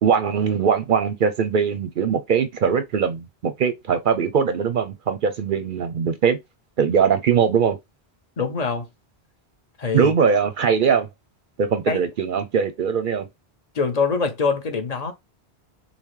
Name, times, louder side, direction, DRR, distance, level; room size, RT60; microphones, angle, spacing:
voice 1, 0.0-6.4 6.8-7.8 9.9-11.1 11.6-13.3, right 6 dB, 60° right, 0.6 m, -21 dB
voice 2, 8.4-8.9 9.8-10.1 11.9-12.0 13.7-15.1, left 5 dB, 40° left, 0.8 m, -24 dB
5.4 x 2.0 x 3.1 m
omnidirectional pair, 1.1 m